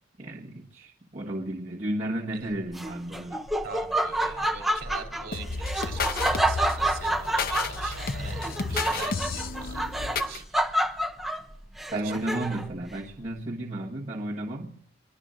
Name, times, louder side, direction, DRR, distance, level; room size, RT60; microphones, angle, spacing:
voice 1, 0.2-3.4 11.9-14.8, right 1 dB, 35° right, -6 dB, 1.5 m, -33 dB
Laughter, 2.7-12.8, right 1 dB, ahead, 0.6 m, -29 dB
voice 2, 3.6-11.0 11.9-12.5, right 5 dB, 50° right, 3 dB, 3.1 m, -43 dB
sound 1, 5.3-10.4, left 4 dB, 50° left, 0.8 m, -32 dB
26.0 x 21.5 x 2.6 m, 0.75 s
head